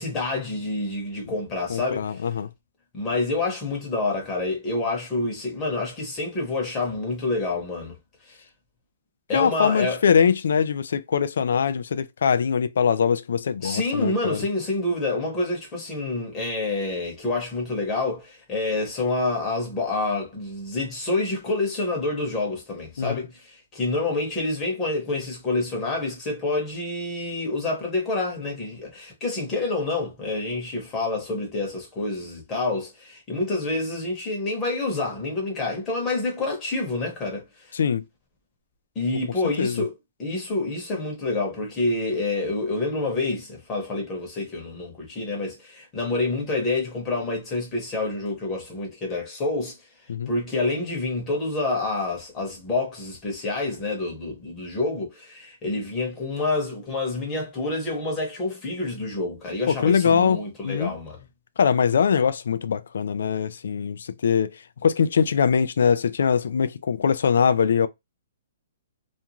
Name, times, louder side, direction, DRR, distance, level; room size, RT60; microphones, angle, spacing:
voice 1, 0.0-2.3 2.9-8.0 9.3-10.0 13.6-37.7 38.9-49.8 50.3-61.2, left 2 dB, 15° left, 1.0 m, -28 dB
voice 2, 1.7-2.5 9.3-14.5 23.0-23.2 37.7-38.0 39.1-39.2 39.6-39.9 50.1-50.3 59.7-60.9 61.6-64.5 64.8-67.9, left 6 dB, 75° left, 0.3 m, -22 dB
2.5 x 2.3 x 2.8 m
hypercardioid pair, 165°, 0 cm